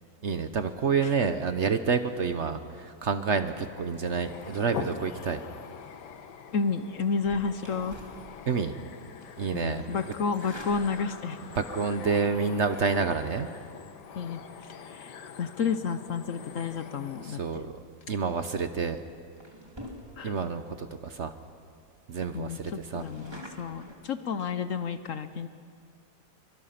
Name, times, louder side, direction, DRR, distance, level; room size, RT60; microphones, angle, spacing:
voice 1, 0.2-5.4 8.5-8.7 9.4-9.9 11.4-13.5 17.2-17.7 18.1-19.0 20.2-21.3 22.1-23.0, right 5 dB, 50° right, 9 dB, 1.0 m, -28 dB
sound 1, 3.5-17.5, left 7 dB, 85° left, 1.7 m, -44 dB
voice 2, 6.5-8.0 9.5-11.4 14.1-17.4 20.2-20.3 22.3-25.5, left 5 dB, 60° left, 11 dB, 1.0 m, -31 dB
sound 2, 7.2-8.8 9.2-9.5 10.1-11.5 12.8-13.0 18.1-18.3 18.8-19.0 19.4-20.5 21.0-21.1 21.3-21.4 21.8-21.9 22.2-24.0, equal, 15° right, 2.7 m, -47 dB
24.5 x 24.5 x 5.8 m, 2.1 s
omnidirectional pair, 1.8 m